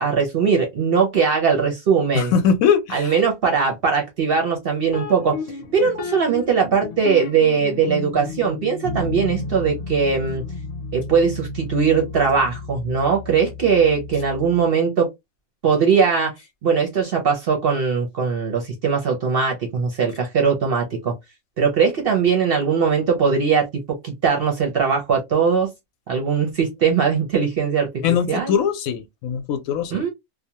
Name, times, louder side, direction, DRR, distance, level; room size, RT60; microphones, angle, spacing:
voice 1, 0.0-2.3 2.9-5.4 5.7-10.4 10.9-15.1 15.6-16.3 16.6-21.1 21.6-23.7 24.0-25.7 26.1-28.6 29.9-30.1, right 6 dB, 55° right, 0.6 m, -20 dB
voice 2, 2.1-3.1 28.0-30.0, left 7 dB, 75° left, 1.0 m, -21 dB
sound 1, 4.9-14.7, left 3 dB, 60° left, 0.4 m, -32 dB
2.7 x 2.1 x 2.7 m
omnidirectional pair, 1.5 m